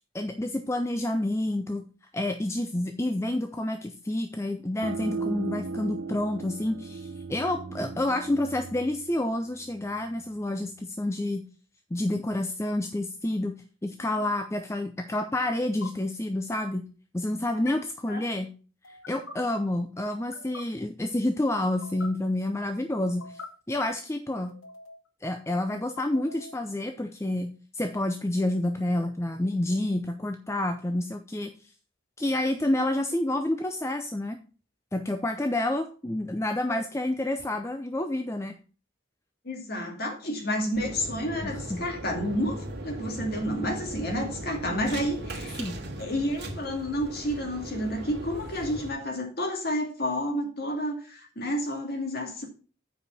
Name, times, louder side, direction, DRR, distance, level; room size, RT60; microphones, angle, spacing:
voice 1, 0.1-1.8 2.1-11.4 11.9-13.5 13.8-16.8 17.1-18.5 18.9-23.4 23.7-24.5 25.2-31.5 32.2-34.4 34.9-38.6 41.4-41.8 45.6-45.8, left 1 dB, 15° left, 0.5 m, -29 dB
sound 1, 4.8-10.2, right 4 dB, 80° right, 0.8 m, -37 dB
sound 2, 11.9-12.2 14.0-14.3 15.6-15.9 17.5-17.7 18.8-19.3 20.1-20.6 21.6-22.1 23.0-23.5 24.5-25.1 25.8-26.6, left 3 dB, 80° left, 1.3 m, -45 dB
voice 2, 39.4-45.6 46.0-52.5, equal, 50° left, 2.1 m, -30 dB
sound 3, 40.7-48.9, right 1 dB, 55° right, 2.3 m, -38 dB
8.2 x 4.9 x 5.4 m
head